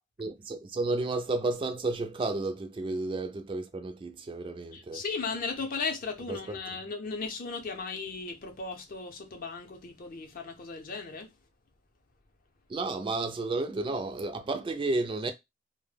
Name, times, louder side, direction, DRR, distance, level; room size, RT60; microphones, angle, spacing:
voice 1, 0.2-5.0 6.3-6.6 12.7-15.3, right 3 dB, 30° right, 0.3 m, -32 dB
voice 2, 4.7-11.3, left 4 dB, 50° left, 0.6 m, -36 dB
2.1 x 2.1 x 3.2 m
head